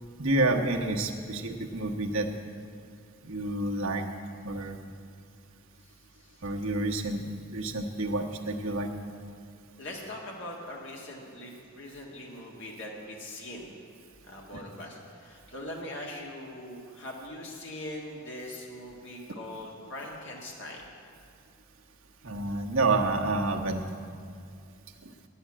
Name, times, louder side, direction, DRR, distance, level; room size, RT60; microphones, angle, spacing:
voice 1, 0.2-2.3 3.2-4.0 4.4-4.8 6.4-7.2 7.5-8.9 14.5-14.6 22.2-23.8, right 2 dB, 75° right, 1 dB, 1.1 m, -29 dB
voice 2, 5.8-6.4 9.8-13.7 14.2-20.8, left 1 dB, 60° left, -1 dB, 1.7 m, -41 dB
9.9 x 8.6 x 8.6 m, 2.3 s
head